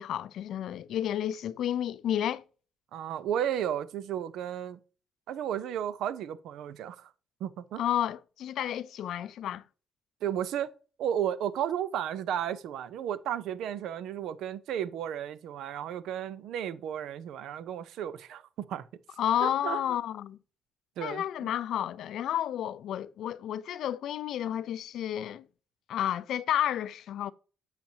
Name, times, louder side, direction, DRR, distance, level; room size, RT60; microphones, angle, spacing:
voice 1, 0.0-2.4 7.8-9.6 19.2-20.4 21.0-25.4 25.9-27.3, left 11 dB, 75° left, 0.4 m, -31 dB
voice 2, 2.9-4.8 5.3-7.1 7.4-7.8 10.2-10.7 11.0-18.9 19.4-19.8 21.0-21.2, right 9 dB, 80° right, 0.6 m, -33 dB
8.7 x 5.9 x 2.8 m
cardioid pair, 90°, 0 cm